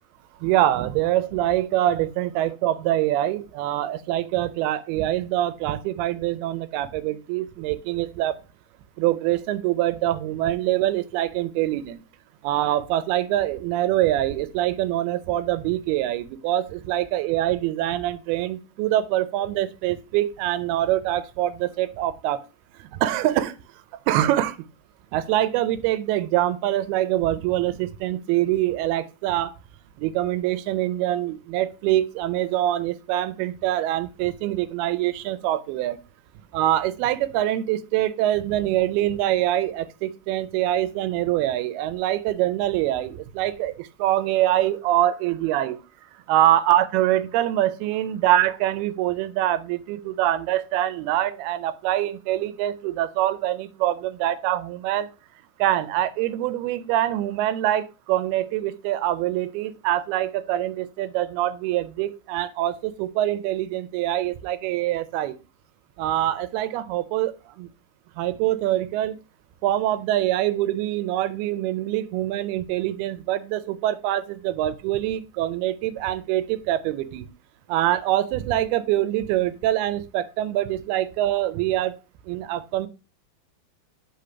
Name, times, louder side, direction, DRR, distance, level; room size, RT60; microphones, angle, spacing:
voice 1, 0.4-8.4 9.0-12.0 12.4-22.4 22.8-23.6 24.1-24.6 25.1-29.5 30.0-36.0 36.5-45.8 46.3-55.1 55.6-65.4 66.0-67.7 68.2-69.2 69.6-77.3 77.7-82.0 82.3-82.9, right 13 dB, 85° right, 2.6 m, -24 dB
5.6 x 5.0 x 5.6 m
omnidirectional pair, 4.4 m